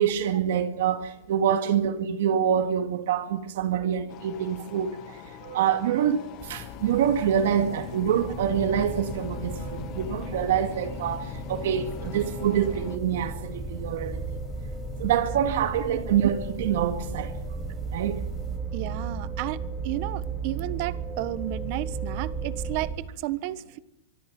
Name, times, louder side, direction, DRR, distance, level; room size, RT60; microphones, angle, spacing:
voice 1, 0.0-5.0 5.4-14.2 15.0-17.3 17.9-18.2, right 9 dB, 65° right, 2.0 m, -26 dB
sound 1, 4.1-13.0, left 10 dB, 35° left, 1.5 m, -42 dB
sound 2, 6.4-18.6, left 6 dB, 15° left, 5.1 m, -43 dB
sound 3, 8.2-23.0, right 4 dB, 15° right, 2.4 m, -35 dB
voice 2, 15.4-16.0 18.7-23.8, right 15 dB, 40° right, 1.4 m, -33 dB
25.0 x 23.5 x 6.1 m
supercardioid pair, 165°, 0 cm